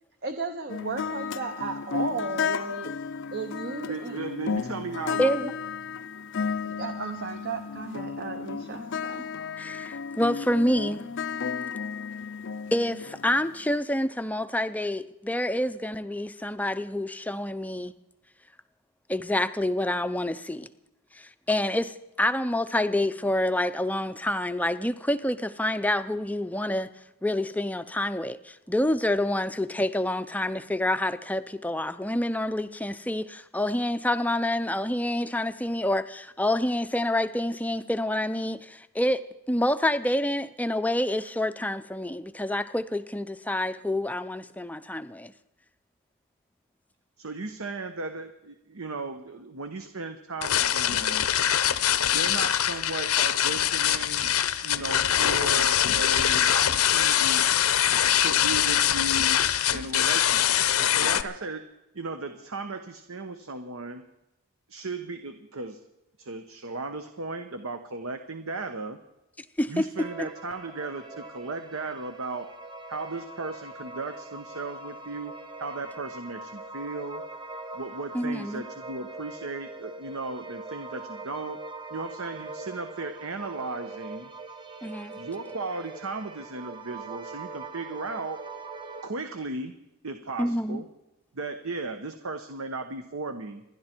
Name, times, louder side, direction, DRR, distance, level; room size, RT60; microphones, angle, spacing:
voice 1, 0.2-3.0 3.3-4.2 5.1-5.5 6.6-9.2, right 3 dB, 45° right, 1.0 m, -34 dB
sound 1, 0.7-13.7, left 6 dB, 55° left, 0.5 m, -33 dB
voice 2, 3.9-5.3 47.2-51.3 52.1-57.5 58.2-59.4 59.7-61.6 61.9-64.0 64.7-65.8 66.2-69.0 69.7-72.5 72.9-75.3 75.6-77.3 77.7-81.6 81.9-84.3 85.2-88.4 89.0-89.7 90.0-90.8 91.3-93.6, right 3 dB, 70° right, 1.0 m, -36 dB
voice 3, 5.2-5.5 9.6-11.0 12.7-17.9 19.1-20.7 21.1-26.9 27.2-45.3 69.6-70.3 78.1-78.6 84.8-85.1 90.4-90.8, left 1 dB, 5° left, 0.5 m, -27 dB
sound 2, 50.4-61.2, left 10 dB, 80° left, 0.8 m, -23 dB
sound 3, 70.0-89.1, right 3 dB, 20° right, 0.9 m, -42 dB
27.5 x 11.0 x 4.5 m
head